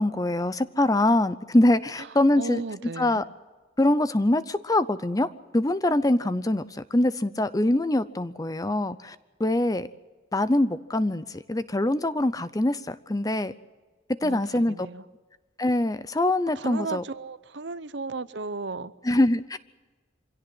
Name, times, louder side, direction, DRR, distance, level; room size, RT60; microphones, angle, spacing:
voice 1, 0.0-2.6 3.0-3.2 3.8-5.3 5.5-9.9 10.3-13.5 14.2-14.7 15.6-17.0 19.0-19.6, left 1 dB, 20° left, 14 dB, 0.6 m, -24 dB
voice 2, 2.4-3.2 14.2-15.0 16.6-18.9, right 3 dB, 60° right, 15 dB, 0.8 m, -35 dB
25.0 x 17.0 x 7.8 m, 1.3 s
head